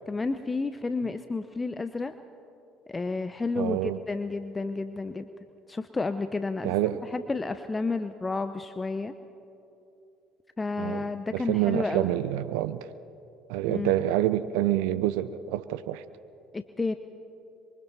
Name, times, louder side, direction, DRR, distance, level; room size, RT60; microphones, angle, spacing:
voice 1, 0.1-2.1 2.9-5.3 5.7-6.8 7.1-9.1 10.6-12.1 13.7-13.9 16.5-16.9, left 3 dB, 20° left, 10 dB, 0.8 m, -31 dB
voice 2, 3.6-4.0 6.6-7.1 10.8-12.9 13.5-16.0, right 14 dB, 75° right, 14 dB, 0.5 m, -27 dB
26.5 x 23.5 x 4.2 m, 2.8 s
hypercardioid pair, 60°, 0 cm